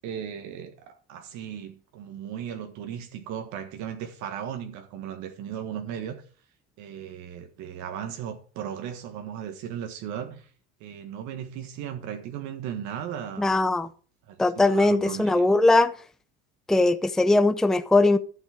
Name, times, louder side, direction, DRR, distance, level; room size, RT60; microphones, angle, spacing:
voice 1, 0.0-6.2 6.8-10.5 10.8-13.6 14.3-15.4, right 9 dB, 70° right, 1.5 m, -36 dB
voice 2, 13.4-13.9 14.4-15.9 16.7-18.2, left 2 dB, ahead, 0.6 m, -20 dB
11.5 x 6.3 x 5.0 m
supercardioid pair, 110°, 30 cm